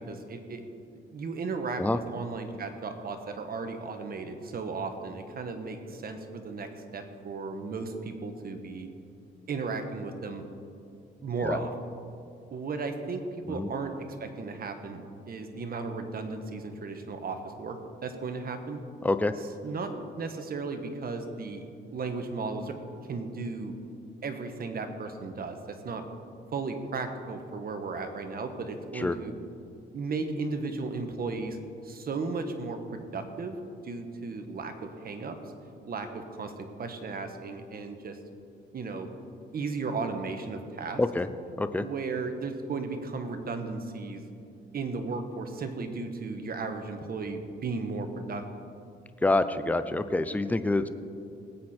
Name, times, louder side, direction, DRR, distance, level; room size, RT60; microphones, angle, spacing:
voice 1, 0.1-0.6 1.1-8.9 9.5-10.4 11.2-11.7 12.5-13.9 14.2-15.0 15.3-17.8 18.0-18.8 19.6-22.7 23.1-23.7 24.2-26.0 26.5-29.3 29.9-31.6 31.8-33.6 33.8-35.4 35.8-38.2 38.7-39.1 39.5-41.0 41.7-44.2 44.7-48.4, right 4 dB, 50° right, 6 dB, 1.4 m, -35 dB
voice 2, 19.0-19.3 28.9-29.2 41.0-41.3 41.6-41.9 49.2-50.9, left 2 dB, 10° left, 11 dB, 0.6 m, -26 dB
19.0 x 8.4 x 4.4 m, 2.5 s
cardioid pair, 90°, 20 cm